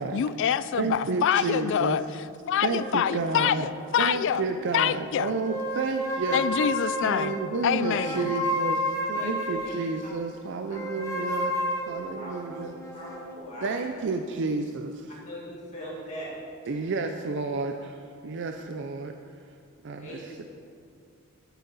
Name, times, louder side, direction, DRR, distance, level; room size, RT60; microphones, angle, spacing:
voice 1, 0.0-2.0 2.5-4.4 4.7-5.3 6.3-7.4 7.6-8.3, left 9 dB, 60° left, 15 dB, 0.3 m, -26 dB
voice 2, 0.8-2.0 2.6-3.7 4.0-6.4 7.0-11.5 11.9-12.8 13.6-15.2 16.7-19.1 19.8-20.4, right 3 dB, 55° right, 5 dB, 0.5 m, -31 dB
sound 1, 2.8-4.8 5.2-10.0 10.7-13.3, equal, 15° left, 1.0 m, -32 dB
voice 3, 9.1-9.7 10.7-10.8 11.4-11.5 11.9-13.7 15.2-16.3 20.0-20.4, equal, 35° left, -5 dB, 2.2 m, -41 dB
12.0 x 8.2 x 4.1 m, 2.3 s
head